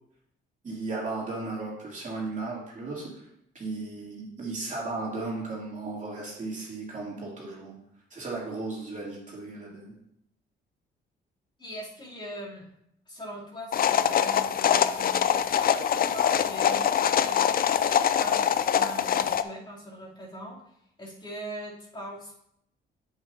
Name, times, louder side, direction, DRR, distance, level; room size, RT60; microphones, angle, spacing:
voice 1, 0.6-3.3 3.5-7.7 8.1-9.9, right 3 dB, 40° right, -4 dB, 2.9 m, -35 dB
voice 2, 11.6-12.7 13.1-16.9 17.2-20.6 21.0-22.4, equal, 25° left, -6 dB, 3.1 m, -41 dB
sound 1, 13.7-19.4, left 9 dB, 50° left, 0.5 m, -24 dB
8.0 x 7.9 x 2.8 m, 0.74 s
cardioid pair, 90°, 20 cm